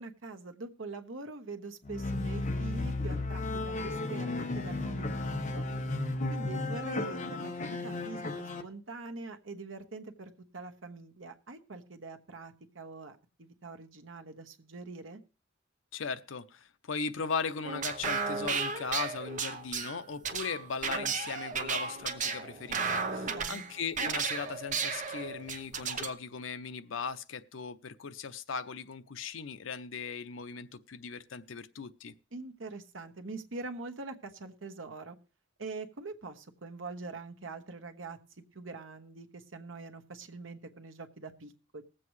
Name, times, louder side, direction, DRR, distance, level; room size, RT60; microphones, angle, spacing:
voice 1, 0.0-5.7 6.3-15.2 23.1-23.7 32.3-35.2 35.6-38.2 38.5-41.8, right 3 dB, 75° right, 1.1 m, -44 dB
sound 1, 1.8-8.6, left 2 dB, 40° left, 1.0 m, -34 dB
voice 2, 15.9-32.1, left 5 dB, 75° left, 0.6 m, -38 dB
sound 2, 17.6-26.1, right 5 dB, 40° right, 0.9 m, -34 dB
20.0 x 7.6 x 3.2 m
head